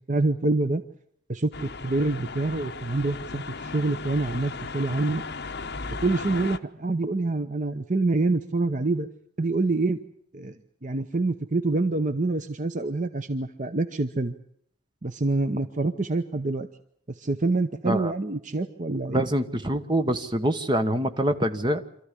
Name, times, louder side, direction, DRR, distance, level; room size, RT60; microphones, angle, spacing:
voice 1, 0.1-0.8 1.3-5.2 6.0-9.1 9.4-10.0 10.3-10.5 10.8-14.3 15.0-16.7 17.2-19.3, right 2 dB, 40° right, 9 dB, 0.8 m, -26 dB
sound 1, 1.5-6.6, left 4 dB, 55° left, 1.0 m, -36 dB
voice 2, 19.1-21.8, right 1 dB, 25° right, 7 dB, 1.2 m, -25 dB
26.5 x 14.0 x 9.9 m, 0.68 s
head